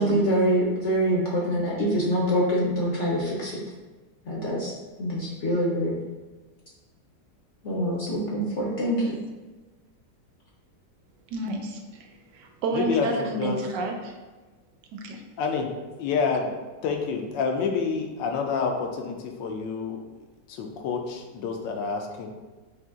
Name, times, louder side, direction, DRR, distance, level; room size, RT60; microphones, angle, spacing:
voice 1, 0.0-3.6 4.2-4.7 5.0-6.0 7.6-9.1, equal, 55° left, -4 dB, 0.8 m, -25 dB
voice 2, 11.3-14.1 14.9-15.2, right 2 dB, 75° right, 3 dB, 1.1 m, -31 dB
voice 3, 12.7-13.6 15.4-15.7 16.0-16.5 16.8-20.0 20.5-22.3, left 5 dB, 80° left, 2 dB, 1.3 m, -28 dB
4.2 x 2.9 x 3.5 m, 1.3 s
omnidirectional pair, 2.0 m